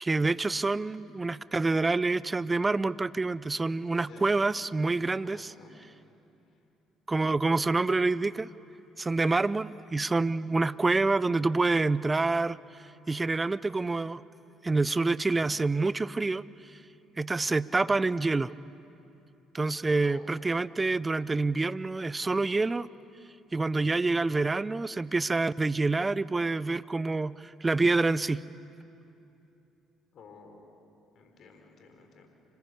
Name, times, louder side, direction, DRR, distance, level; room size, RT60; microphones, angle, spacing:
voice 1, 0.0-5.5 7.1-8.5 9.0-12.6 13.1-14.2 14.6-16.4 17.2-18.5 19.5-22.9 23.5-28.4, right 3 dB, 25° right, 18 dB, 0.6 m, -27 dB
voice 2, 4.0-4.6 5.2-5.8 9.2-9.5 19.9-20.3 30.1-30.7 31.1-32.3, left 4 dB, 55° left, 5 dB, 3.5 m, -53 dB
26.5 x 20.0 x 8.4 m, 2.8 s
hypercardioid pair, 50°, 0 cm